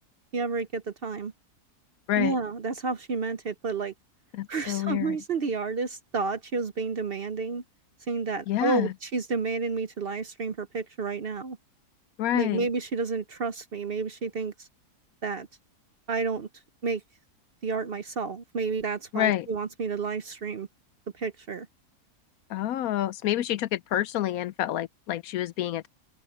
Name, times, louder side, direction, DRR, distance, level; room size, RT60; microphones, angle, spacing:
voice 1, 0.3-1.3 2.2-3.9 4.5-7.6 8.1-11.6 12.3-14.7 15.2-15.5 16.1-16.5 16.8-17.0 17.6-20.7 21.2-21.7, right 4 dB, 50° right, 0.7 m, -30 dB
voice 2, 4.3-5.2 8.5-8.9 12.2-12.7 19.1-19.5 22.5-25.9, left 12 dB, 70° left, 0.9 m, -28 dB
open air
omnidirectional pair, 1.7 m